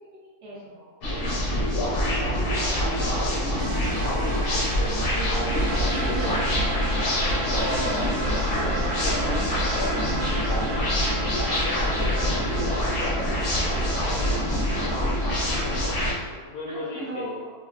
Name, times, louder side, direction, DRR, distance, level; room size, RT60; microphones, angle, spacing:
voice 1, 0.0-0.9 1.9-4.7 4.9-6.9 7.3-8.1 8.6-9.4 9.6-9.8 14.6-15.0 16.7-17.5, right 2 dB, 65° right, -7 dB, 0.7 m, -39 dB
sound 1, 1.0-16.1, left 1 dB, 55° left, 0.6 m, -25 dB
sound 2, 3.6-16.0, right 2 dB, 85° right, 1.1 m, -34 dB
voice 2, 7.3-8.1 8.9-9.3 9.8-10.0 11.5-15.0 16.4-17.4, left 3 dB, 75° left, -3 dB, 1.1 m, -36 dB
3.0 x 2.0 x 2.4 m, 1.4 s
omnidirectional pair, 1.6 m